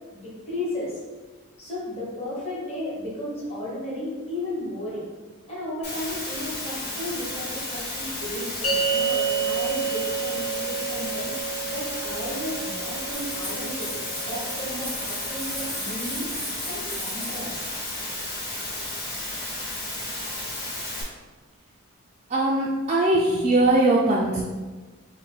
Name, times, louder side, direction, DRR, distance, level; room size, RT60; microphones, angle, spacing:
voice 1, 0.1-1.0 1.6-5.0 5.5-13.9 14.2-17.6, left 1 dB, 30° left, -7 dB, 1.1 m, -34 dB
Water, 5.8-21.0, left 1 dB, 50° left, 1.2 m, -33 dB
sound 1, 8.6-15.2, right 6 dB, 70° left, 0.6 m, -30 dB
sound 2, 13.1-18.1, equal, ahead, 0.7 m, -38 dB
voice 2, 22.3-24.4, right 2 dB, 30° right, -4 dB, 0.3 m, -20 dB
3.3 x 2.0 x 4.2 m, 1.3 s
head